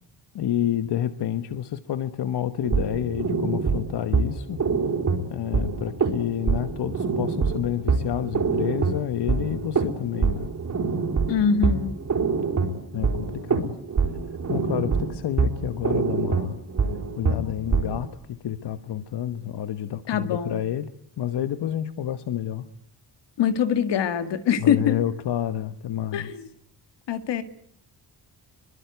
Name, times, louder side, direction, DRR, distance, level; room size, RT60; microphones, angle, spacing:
voice 1, 0.3-4.6 5.3-10.5 12.9-13.7 14.5-16.6 17.2-20.9 21.2-22.7 24.6-26.3, left 11 dB, 70° left, 11 dB, 1.3 m, -29 dB
sound 1, 2.6-18.1, right 5 dB, 45° right, 4.3 m, -25 dB
voice 2, 11.3-12.0 20.1-20.6 23.4-25.0 26.1-26.5 27.1-27.4, left 7 dB, 90° left, 10 dB, 2.1 m, -23 dB
25.0 x 23.5 x 9.5 m, 0.70 s
wide cardioid pair, 135°, 41 cm